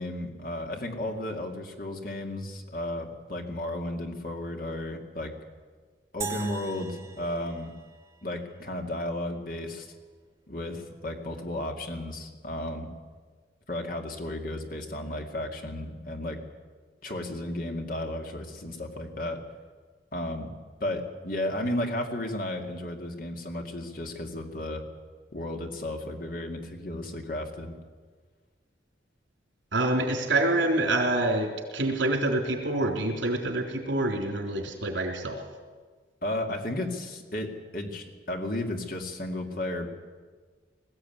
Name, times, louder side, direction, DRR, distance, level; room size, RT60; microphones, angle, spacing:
voice 1, 0.0-5.3 6.1-7.7 8.2-9.9 10.5-12.9 13.7-16.4 17.0-19.4 20.1-20.5 20.8-24.8 25.3-27.8 36.2-39.9, left 1 dB, 50° left, 3 dB, 2.5 m, -33 dB
sound 1, 6.2-8.6, right 5 dB, 15° right, 1.4 m, -40 dB
voice 2, 29.7-35.4, right 2 dB, 80° right, 3 dB, 3.8 m, -26 dB
20.5 x 15.0 x 9.6 m, 1.5 s
head